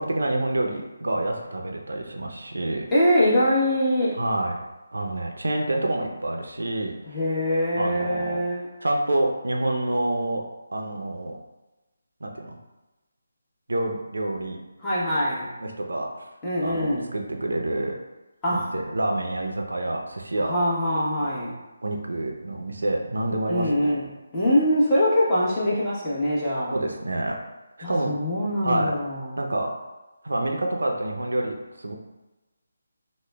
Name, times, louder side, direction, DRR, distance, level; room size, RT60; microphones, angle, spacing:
voice 1, 0.0-2.9 4.2-4.6 4.9-7.0 7.8-8.4 8.8-10.4 10.7-11.4 12.2-12.6 13.7-14.6 15.6-16.1 16.6-18.0 18.5-20.5 21.2-21.3 21.8-23.9 26.7-27.4 27.9-28.1 28.6-29.0 29.4-29.7 30.2-32.0, right 1 dB, 75° right, 2 dB, 0.5 m, -27 dB
voice 2, 2.9-4.2 7.1-8.7 14.8-15.5 16.4-17.1 18.4-18.7 20.4-21.5 23.5-26.7 27.8-29.4, equal, 15° left, -9 dB, 1.0 m, -23 dB
5.1 x 2.1 x 2.2 m, 1.1 s
figure-of-eight pair, 155°, 0 cm